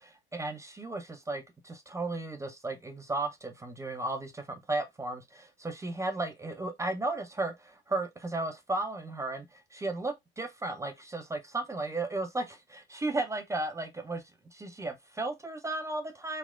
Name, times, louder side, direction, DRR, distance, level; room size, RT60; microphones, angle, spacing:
voice 1, 0.3-14.2 14.5-16.4, right 2 dB, 10° right, 0.4 m, -35 dB
4.2 x 2.1 x 2.2 m
figure-of-eight pair, 70°, 32 cm